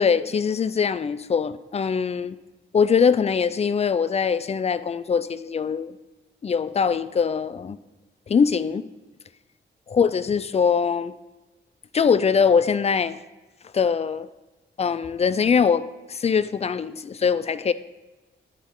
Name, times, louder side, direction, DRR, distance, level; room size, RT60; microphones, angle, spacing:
voice 1, 0.0-2.4 2.7-6.0 6.4-7.8 8.3-8.9 9.9-11.1 11.9-13.2 13.7-14.3 14.8-17.7, left 6 dB, 30° left, 15 dB, 0.3 m, -22 dB
9.6 x 4.0 x 3.8 m, 1.1 s
cardioid pair, 70°, 20 cm